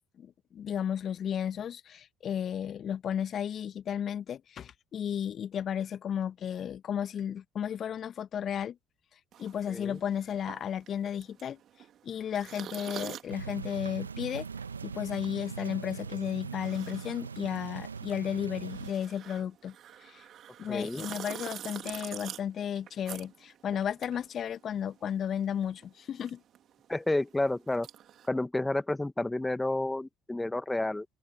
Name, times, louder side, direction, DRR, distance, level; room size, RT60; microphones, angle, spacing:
voice 1, 0.2-8.8 9.4-11.6 12.0-14.5 14.8-19.7 20.0-20.2 20.6-26.4, left 9 dB, 45° left, 1.3 m, -34 dB
sound 1, 9.3-25.1 25.4-28.3, right 10 dB, 50° right, 3.2 m, -46 dB
voice 2, 9.7-10.0 20.7-21.0 26.9-27.9 28.3-31.0, left 2 dB, 10° left, 1.3 m, -30 dB
sound 2, 13.3-18.9, right 5 dB, 90° right, 1.7 m, -40 dB
open air
figure-of-eight pair, 55°, 0 cm